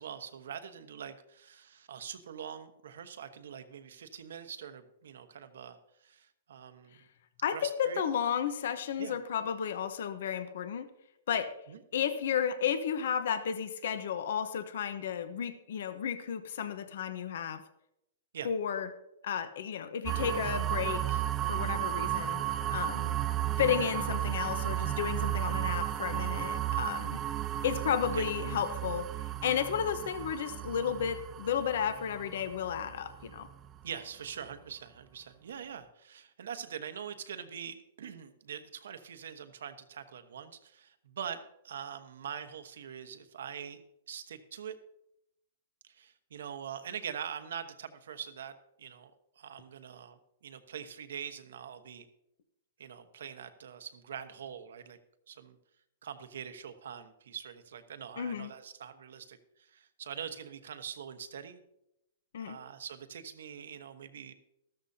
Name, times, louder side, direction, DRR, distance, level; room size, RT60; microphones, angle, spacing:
voice 1, 0.0-5.8 6.0-7.0 7.5-8.0 9.0-9.1 11.7-11.8 18.3-18.5 28.1-28.2 33.8-43.8 44.1-44.8 45.8-49.1 49.4-52.1 52.8-55.0 55.3-55.6 56.0-61.6 62.4-64.3, right 8 dB, 80° right, 9 dB, 1.2 m, -43 dB
voice 2, 7.4-10.9 11.3-11.5 11.9-17.6 18.4-18.9 19.2-21.2 21.5-22.4 22.7-23.1 23.6-27.2 27.6-29.1 29.4-33.5 58.2-58.5 62.3-62.6, left 8 dB, 65° left, 11 dB, 1.0 m, -33 dB
sound 1, 20.1-33.8, right 12 dB, 20° right, 0.3 m, -34 dB
14.0 x 13.0 x 2.8 m, 0.82 s
hypercardioid pair, 160°, 0 cm